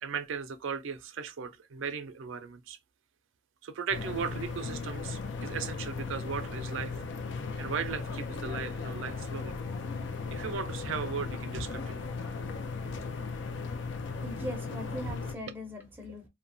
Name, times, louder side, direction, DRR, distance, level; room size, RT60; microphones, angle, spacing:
voice 1, 0.0-2.8 3.6-6.9 7.6-9.6 10.3-12.1, right 6 dB, 80° right, 0.4 m, -37 dB
sound 1, 3.9-15.3, left 4 dB, 65° left, 0.4 m, -37 dB
voice 2, 14.0-16.3, equal, 10° right, 0.5 m, -40 dB
2.8 x 2.1 x 2.6 m
head